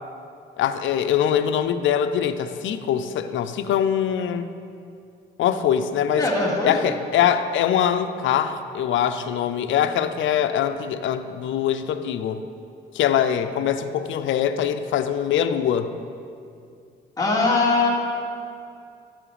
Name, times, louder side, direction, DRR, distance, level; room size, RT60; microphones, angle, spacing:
voice 1, 0.6-4.5 5.4-6.3 6.6-12.4 12.9-15.9, left 9 dB, 75° left, 9 dB, 0.6 m, -23 dB
voice 2, 6.2-6.9 17.2-17.9, left 3 dB, 20° left, -5 dB, 2.7 m, -21 dB
13.0 x 7.4 x 5.1 m, 2.5 s
cardioid pair, 90°, 20 cm